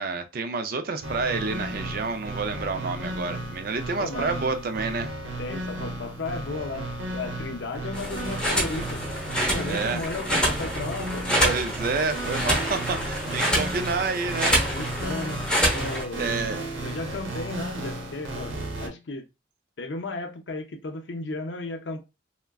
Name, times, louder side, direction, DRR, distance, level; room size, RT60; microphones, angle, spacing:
voice 1, 0.0-5.1 9.7-10.1 11.4-14.6 16.2-16.6, right 4 dB, 50° right, 0.4 m, -29 dB
sound 1, 1.0-18.9, right 1 dB, 90° right, 0.8 m, -34 dB
voice 2, 5.4-9.0 9.5-11.6 14.7-16.3 16.8-19.2 19.8-22.0, left 3 dB, 70° left, 0.5 m, -34 dB
sound 2, 7.9-16.0, equal, 5° left, 0.8 m, -27 dB
3.4 x 2.1 x 2.3 m
head